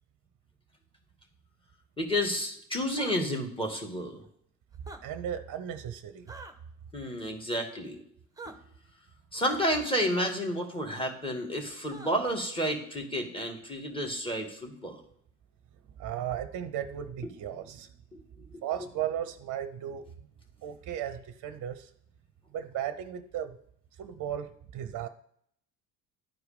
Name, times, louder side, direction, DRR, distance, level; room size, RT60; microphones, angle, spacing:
voice 1, 2.0-4.2 6.9-8.0 9.3-15.0 18.1-18.2 18.5-18.6, equal, 10° left, 2 dB, 2.2 m, -31 dB
sound 1, 2.9-3.2 4.7-5.0 6.3-6.5 8.4-8.5 10.1-10.3 11.9-12.3, right 2 dB, 10° right, 1.1 m, -44 dB
voice 2, 5.0-6.3 16.0-17.9 18.6-20.1 20.6-21.9 22.5-23.6 24.0-25.1, right 10 dB, 40° right, 10 dB, 0.8 m, -35 dB
12.0 x 4.8 x 5.2 m, 0.67 s
figure-of-eight pair, 55°, 45 cm